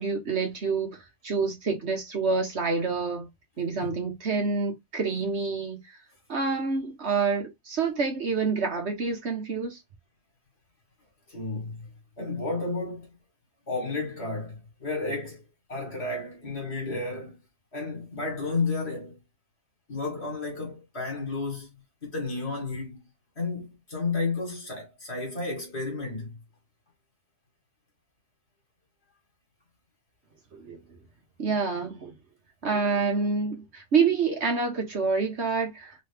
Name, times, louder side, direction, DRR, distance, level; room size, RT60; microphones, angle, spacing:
voice 1, 0.0-3.3 3.6-5.8 6.3-9.8 30.5-30.8 31.4-32.1 32.6-36.0, right 4 dB, 55° right, 1.4 m, -27 dB
voice 2, 11.3-11.8 12.2-13.1 13.7-17.4 17.7-19.2 19.9-21.7 22.0-23.0 23.4-26.4, left 3 dB, 50° left, 2.3 m, -32 dB
4.0 x 3.1 x 3.4 m
omnidirectional pair, 1.4 m